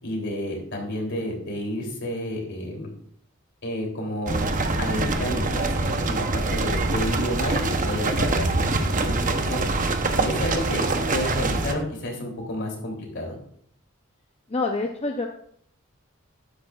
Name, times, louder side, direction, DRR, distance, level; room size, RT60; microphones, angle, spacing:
voice 1, 0.0-2.9 3.6-4.5 4.8-9.6 10.2-13.3, left 1 dB, 60° left, 0 dB, 3.2 m, -30 dB
sound 1, 4.3-11.7, right 3 dB, 40° right, 0.8 m, -24 dB
voice 2, 14.5-15.3, left 3 dB, 30° left, 2 dB, 0.6 m, -26 dB
12.5 x 10.0 x 2.4 m, 0.65 s
head